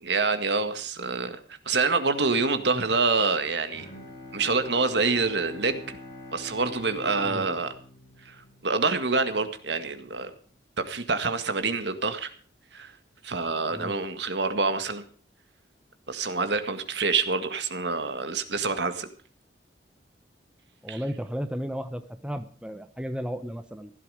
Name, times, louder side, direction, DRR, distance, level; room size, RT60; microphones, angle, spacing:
voice 1, 0.0-1.4 1.7-3.9 4.3-6.0 6.3-7.7 8.3-8.4 8.6-10.3 10.8-12.3 12.7-12.9 13.2-15.0 16.1-19.1 20.9-21.0, right 4 dB, 70° right, 9 dB, 1.9 m, -26 dB
Bowed string instrument, 3.7-9.3, left 2 dB, 20° left, 5.1 m, -44 dB
voice 2, 20.8-23.9, equal, 5° right, 9 dB, 0.9 m, -34 dB
16.5 x 12.0 x 5.0 m, 0.43 s
head